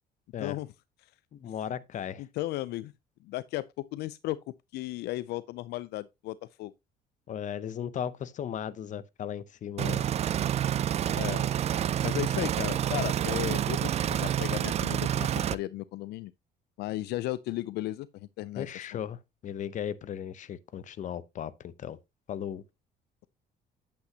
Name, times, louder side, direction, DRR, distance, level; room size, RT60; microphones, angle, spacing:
voice 1, 1.3-2.3 7.3-10.0 18.6-22.0 22.3-22.6, left 9 dB, 45° left, 0.7 m, -36 dB
voice 2, 2.2-2.9 3.2-4.4 4.7-6.7 11.1-11.5 12.0-16.3 16.8-18.9, left 16 dB, 75° left, 0.4 m, -35 dB
sound 1, 9.8-15.5, right 10 dB, 40° right, 0.4 m, -28 dB
8.6 x 7.9 x 2.8 m
cardioid pair, 110°, 17 cm